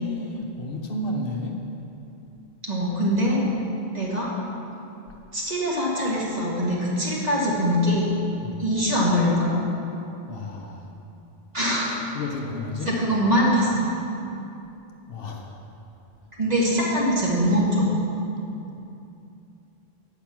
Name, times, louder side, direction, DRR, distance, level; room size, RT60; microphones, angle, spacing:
voice 1, 0.0-1.6 8.4-8.6 10.3-10.9 12.1-13.0 15.1-15.6, left 2 dB, 65° left, 0 dB, 1.0 m, -32 dB
voice 2, 2.6-3.4 3.9-4.3 5.3-8.1 8.6-9.5 11.5-12.0 12.9-13.9 16.4-18.0, equal, 40° right, -6 dB, 1.9 m, -23 dB
8.7 x 5.9 x 6.0 m, 2.8 s
omnidirectional pair, 1.1 m